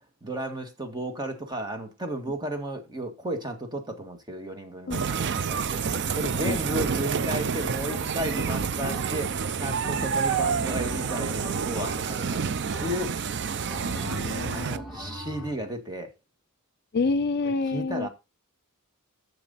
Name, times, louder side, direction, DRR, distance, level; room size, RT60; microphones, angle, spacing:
voice 1, 0.2-5.8 6.1-12.4 12.8-13.2 14.5-16.1 17.7-18.1, right 1 dB, 20° right, 1.7 m, -33 dB
sound 1, 4.9-14.8, right 6 dB, 55° right, 0.5 m, -28 dB
sound 2, 7.9-8.4 8.9-9.4 9.8-12.3 12.7-13.3 13.7-15.6, equal, ahead, 2.2 m, -40 dB
voice 2, 13.9-14.9 16.9-18.1, left 3 dB, 50° left, 0.5 m, -28 dB
10.5 x 7.1 x 4.0 m
head